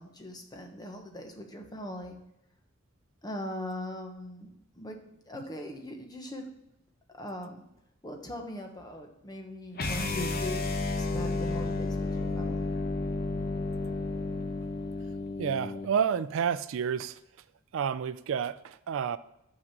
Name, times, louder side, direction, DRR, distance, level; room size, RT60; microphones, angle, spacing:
voice 1, 0.0-2.2 3.2-4.5 4.7-5.0 5.2-6.7 7.1-7.6 8.0-12.7, left 1 dB, 20° left, 3 dB, 1.1 m, -40 dB
sound 1, 9.7-15.9, left 3 dB, 45° left, 0.9 m, -32 dB
voice 2, 15.4-17.2 17.7-19.2, right 7 dB, 65° right, 15 dB, 0.3 m, -30 dB
6.2 x 6.1 x 5.9 m, 0.81 s
head